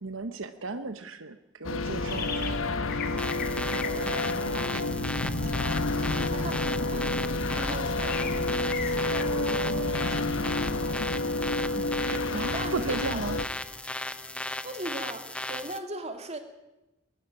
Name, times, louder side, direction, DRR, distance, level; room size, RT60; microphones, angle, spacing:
voice 1, 0.0-2.7 3.6-5.4 11.5-13.4, right 3 dB, 70° right, 9 dB, 1.0 m, -36 dB
sound 1, 1.6-13.4, left 2 dB, 75° left, 1.3 m, -29 dB
sound 2, 2.1-2.6 2.9-9.3, left 6 dB, 50° left, 2.4 m, -41 dB
sound 3, 3.2-15.8, left 1 dB, 5° left, 0.7 m, -36 dB
voice 2, 6.3-6.6 6.9-7.2 7.4-10.4 12.3-13.2 14.6-16.4, right 2 dB, 30° right, 6 dB, 2.3 m, -40 dB
21.5 x 12.5 x 9.8 m, 1.0 s
head